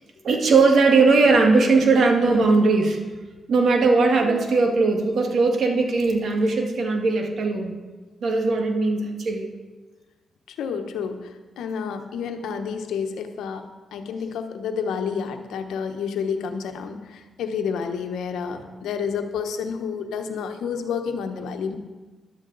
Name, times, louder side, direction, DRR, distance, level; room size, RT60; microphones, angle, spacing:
voice 1, 0.2-3.0 3.5-7.7 8.2-9.5, right 3 dB, 65° right, 3 dB, 1.9 m, -19 dB
voice 2, 10.5-13.7 13.9-21.8, left 6 dB, 90° left, 6 dB, 1.1 m, -29 dB
14.0 x 11.5 x 4.0 m, 1.3 s
cardioid pair, 60°, 0 cm